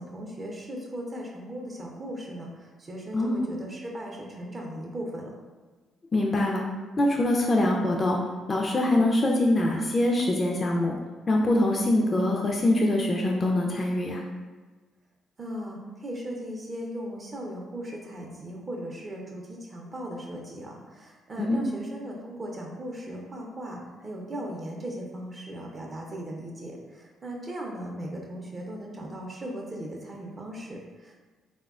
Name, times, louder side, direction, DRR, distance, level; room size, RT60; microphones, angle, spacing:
voice 1, 0.0-5.3 15.4-31.2, equal, 40° right, 0 dB, 0.5 m, -38 dB
voice 2, 3.1-3.5 6.1-6.6 7.0-8.2 8.5-10.9 11.3-14.2 21.4-21.6, left 1 dB, 35° left, 0 dB, 0.3 m, -24 dB
3.3 x 2.1 x 2.4 m, 1.3 s
hypercardioid pair, 50°, 0 cm